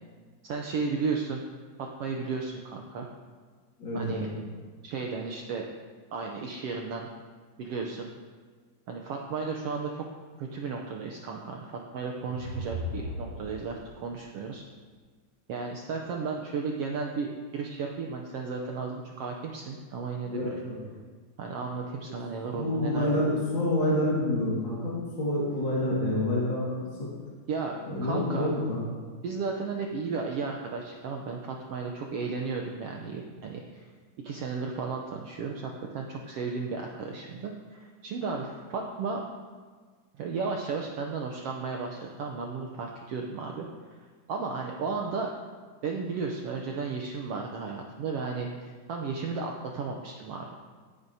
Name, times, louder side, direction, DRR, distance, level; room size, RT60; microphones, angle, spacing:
voice 1, 0.4-1.4 1.8-3.1 3.9-4.3 4.8-5.7 6.1-7.1 7.6-8.1 8.9-10.0 10.4-14.6 15.5-20.6 21.4-23.2 27.5-28.5 29.2-33.9 34.2-39.2 40.2-44.0 44.3-45.3 45.8-50.5, right 4 dB, 80° right, 1 dB, 1.4 m, -34 dB
voice 2, 3.8-4.4 20.2-20.7 22.5-26.7 27.0-27.1 27.8-28.8, left 1 dB, 40° left, -8 dB, 2.4 m, -28 dB
sound 1, 11.9-14.0, equal, 50° right, 1.9 m, -37 dB
17.0 x 8.8 x 2.8 m, 1.5 s
omnidirectional pair, 3.6 m